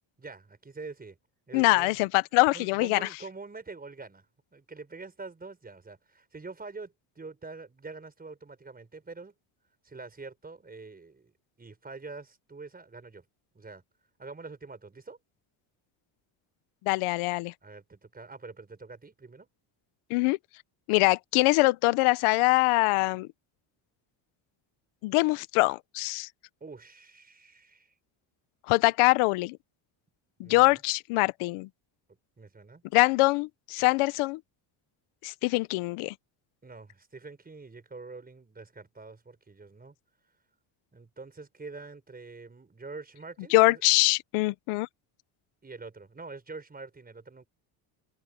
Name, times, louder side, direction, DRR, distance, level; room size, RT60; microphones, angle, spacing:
voice 1, 0.2-1.2 1.5-2.0 2.5-4.2 4.5-9.3 9.8-11.3 11.6-13.2 13.5-13.8 14.2-15.2 17.6-19.5 26.6-27.9 30.4-30.8 32.4-32.8 36.6-39.9 40.9-43.8 45.6-47.5, right 3 dB, 20° right, 5.1 m, -45 dB
voice 2, 1.5-3.1 16.9-17.5 20.1-20.4 20.9-23.3 25.0-26.3 28.7-29.6 30.4-31.7 32.9-34.4 35.2-36.1 43.5-44.9, left 23 dB, 90° left, 0.9 m, -23 dB
open air
cardioid pair, 120°, 49 cm